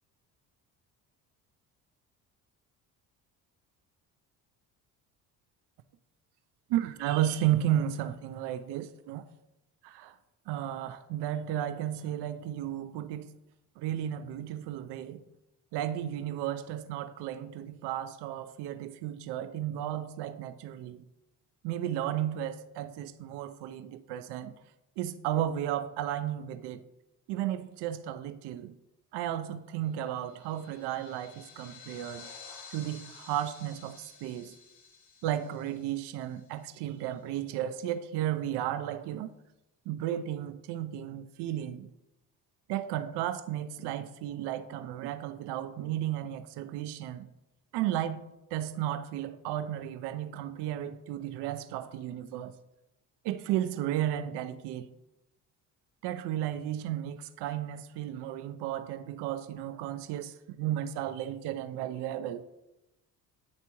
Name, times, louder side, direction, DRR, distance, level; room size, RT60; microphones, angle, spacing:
voice 1, 6.7-9.2 9.8-10.2 10.5-13.3 13.8-15.2 15.7-21.1 21.6-24.5 25.0-26.8 27.3-28.8 29.1-32.3 32.7-34.6 35.2-39.3 39.9-41.9 42.7-47.3 47.7-52.5 53.2-54.9 56.0-62.5, right 11 dB, 70° right, 0.6 m, -33 dB
sound 1, 30.0-36.9, left 5 dB, 75° left, 1.2 m, -52 dB
9.7 x 3.4 x 3.0 m
supercardioid pair, 65°, 43 cm